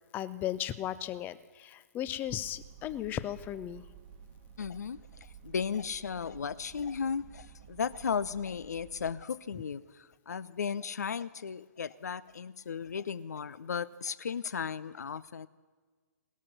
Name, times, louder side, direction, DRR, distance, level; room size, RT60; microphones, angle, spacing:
voice 1, 0.1-3.8, left 12 dB, 20° left, 16 dB, 0.5 m, -36 dB
sound 1, 2.2-9.1, right 8 dB, 35° right, 1.1 m, -53 dB
voice 2, 4.6-15.5, left 6 dB, 65° left, 19 dB, 0.5 m, -35 dB
18.0 x 13.0 x 6.0 m, 1.4 s
figure-of-eight pair, 120°, 10 cm